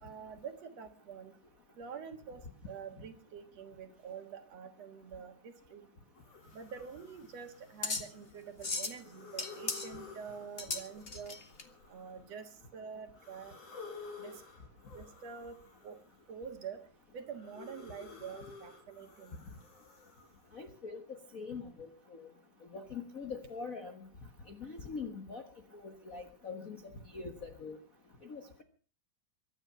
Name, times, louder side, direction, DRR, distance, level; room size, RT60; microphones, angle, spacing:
voice 1, 0.0-1.3 1.8-5.8 6.5-11.4 11.9-13.5 14.2-14.3 14.9-15.6 15.8-16.0 16.3-16.8 17.1-19.4, right 6 dB, 55° right, 8 dB, 2.5 m, -46 dB
sound 1, 6.2-8.4 8.9-12.6 13.1-16.3 16.7-20.6, left 4 dB, 50° left, 4.3 m, -52 dB
sound 2, 6.5-11.6, left 3 dB, 30° left, 1.0 m, -39 dB
voice 2, 20.5-21.6 22.1-22.3 22.7-23.9 24.5-25.4 25.8-26.8 27.1-27.8 28.2-28.6, left 5 dB, 80° left, 6 dB, 0.7 m, -43 dB
23.5 x 10.0 x 5.7 m, 0.41 s
omnidirectional pair, 3.8 m